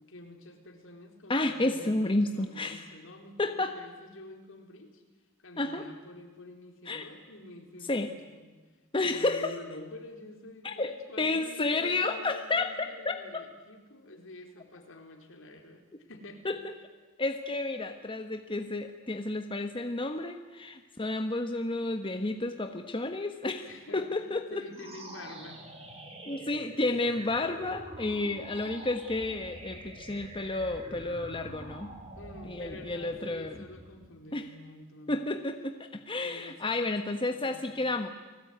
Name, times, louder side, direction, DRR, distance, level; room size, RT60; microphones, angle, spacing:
voice 1, 0.0-5.0 5.4-8.5 8.9-16.4 23.6-25.6 25.9-26.0 32.1-35.2 36.2-37.8, left 1 dB, 70° left, 4 dB, 4.2 m, -48 dB
voice 2, 1.3-2.9 3.4-3.7 5.6-5.9 6.9-7.1 7.9-8.1 8.9-9.5 10.6-12.7 13.0-13.5 16.4-16.6 17.2-23.7 23.9-24.6 26.2-31.9 32.5-33.6 34.3-34.4 35.1-38.1, left 2 dB, 25° left, 6 dB, 1.2 m, -31 dB
sound 1, 24.7-34.2, right 1 dB, 30° right, 4.9 m, -46 dB
30.0 x 19.5 x 9.4 m, 1.3 s
head